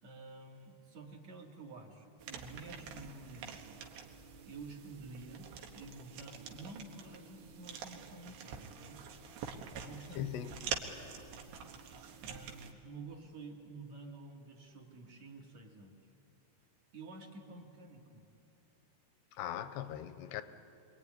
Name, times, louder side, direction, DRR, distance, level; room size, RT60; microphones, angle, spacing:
voice 1, 0.0-3.8 4.4-9.0 9.8-10.5 12.2-15.9 16.9-18.3, right 3 dB, 45° right, 0 dB, 3.2 m, -50 dB
sound 1, 2.2-12.7, right 6 dB, 85° right, 3.7 m, -46 dB
voice 2, 10.2-10.5 19.3-20.4, left 11 dB, 80° left, 11 dB, 3.0 m, -39 dB
25.0 x 23.5 x 9.6 m, 2.6 s
omnidirectional pair, 4.8 m